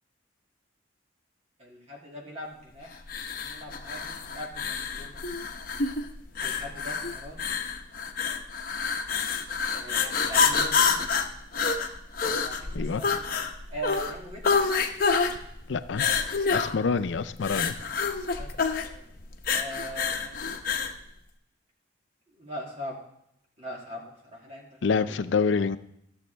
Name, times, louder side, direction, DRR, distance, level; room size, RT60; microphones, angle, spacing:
voice 1, 1.6-3.0 3.3-5.2 6.4-7.5 9.7-11.0 12.4-13.3 13.7-14.5 18.4-19.1 19.5-20.4 22.3-23.0 23.6-25.2, equal, 35° right, -2 dB, 2.2 m, -41 dB
sound 1, 3.1-21.0, left 5 dB, 50° left, 0.8 m, -28 dB
voice 2, 15.7-16.1 16.5-17.7 24.8-25.8, left 5 dB, 80° left, 13 dB, 0.5 m, -26 dB
13.5 x 7.2 x 3.4 m, 0.77 s
head